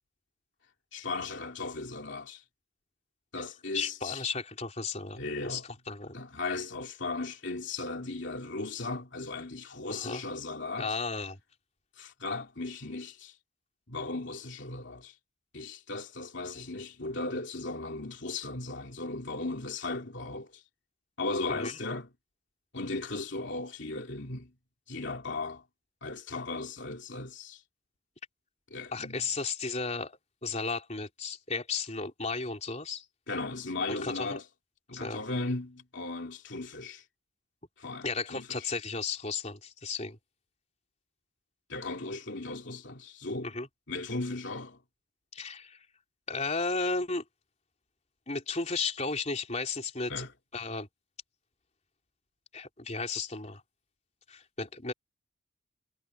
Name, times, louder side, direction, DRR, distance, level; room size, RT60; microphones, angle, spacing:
voice 1, 0.9-2.4 3.3-4.3 5.1-5.7 6.1-11.0 12.0-13.4 13.9-15.1 15.5-20.6 21.2-22.1 22.7-24.5 24.9-25.6 26.0-27.6 28.7-29.3 33.3-34.4 34.9-37.0 37.8-38.7 41.7-43.5 43.9-44.8 50.1-50.3, left 3 dB, 60° left, 3.2 m, -37 dB
voice 2, 3.7-5.6 5.9-6.2 9.9-10.2 10.8-11.4 21.6-21.7 28.9-33.1 33.9-34.4 34.9-35.2 38.0-40.2 43.4-43.7 45.3-45.9 46.3-47.2 48.3-50.2 50.5-50.9 52.5-53.6 54.3-54.9, left 4 dB, 35° left, 3.7 m, -34 dB
head